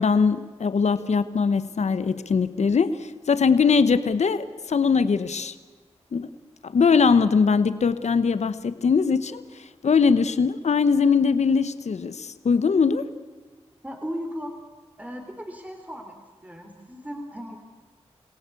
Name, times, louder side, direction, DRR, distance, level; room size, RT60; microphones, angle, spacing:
voice 1, 0.0-5.5 6.1-6.3 6.6-9.4 9.8-13.1, left 5 dB, 75° left, 13 dB, 1.0 m, -21 dB
voice 2, 13.8-14.6 15.0-16.2 16.4-17.6, equal, 15° right, 3 dB, 3.4 m, -36 dB
28.0 x 17.0 x 8.4 m, 1.4 s
cardioid pair, 40°, 12 cm